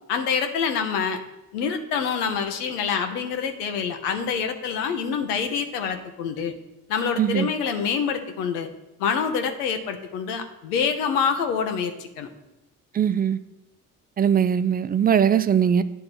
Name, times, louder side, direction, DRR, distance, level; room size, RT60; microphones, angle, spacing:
voice 1, 0.1-1.2 1.5-6.5 6.9-8.7 9.0-12.3, left 6 dB, 85° left, 6 dB, 0.8 m, -26 dB
voice 2, 7.2-7.5 12.9-13.4 14.2-15.8, right 8 dB, 25° right, 14 dB, 0.3 m, -20 dB
8.9 x 3.8 x 6.2 m, 0.97 s
hypercardioid pair, 45°, 46 cm